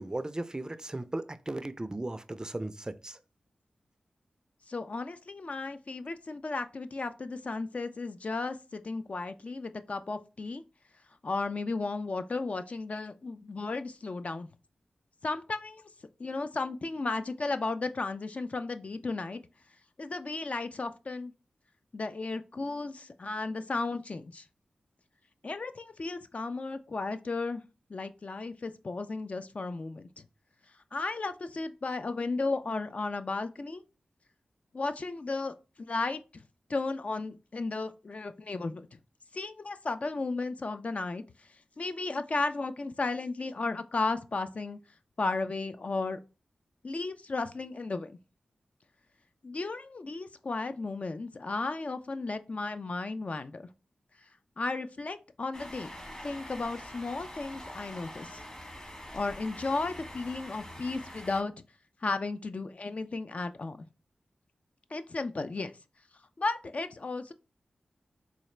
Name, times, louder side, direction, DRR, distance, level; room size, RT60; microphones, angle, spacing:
voice 1, 0.0-3.2, right 2 dB, 25° right, 0.4 m, -36 dB
voice 2, 4.7-10.6 11.2-14.5 15.2-15.8 16.2-19.4 20.0-21.3 21.9-24.4 25.4-27.6 27.9-30.2 30.9-33.8 34.7-36.4 36.7-39.0 39.3-41.2 41.8-44.8 45.2-46.2 46.8-48.1 49.4-53.7 54.6-55.9 56.2-58.4 59.1-61.5 62.0-63.9 64.9-65.7 66.4-67.3, left 3 dB, 50° left, 0.4 m, -34 dB
sound 1, 55.5-61.4, left 1 dB, 30° left, 1.2 m, -45 dB
4.0 x 2.4 x 3.2 m
cardioid pair, 40°, 3 cm